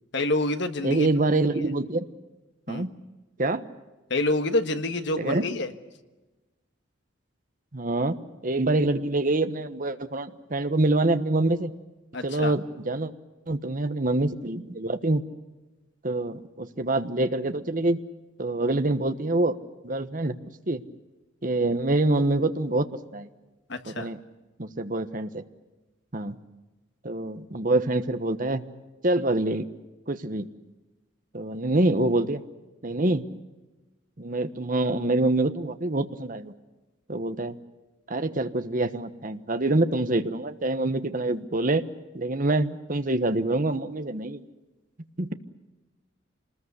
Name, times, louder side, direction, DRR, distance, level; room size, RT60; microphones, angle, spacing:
voice 1, 0.1-1.1 1.6-1.7 2.7-2.9 4.1-5.7 12.1-12.5 23.7-24.1, left 2 dB, 60° left, 8 dB, 1.5 m, -27 dB
voice 2, 0.8-2.1 2.7-2.9 3.4-3.6 5.2-5.5 7.7-11.7 12.2-13.1 13.5-15.2 16.0-18.0 18.4-19.6 19.8-20.4 20.7-20.8 21.4-22.9 23.1-23.3 23.9-24.2 24.6-25.4 26.1-26.4 27.0-28.6 29.0-29.7 30.1-30.5 31.3-32.4 32.8-33.2 34.2-36.5 37.1-37.6 38.1-41.8 42.1-44.4 45.2-45.3, right 2 dB, 40° right, 9 dB, 1.2 m, -25 dB
26.5 x 20.0 x 8.2 m, 1.1 s
head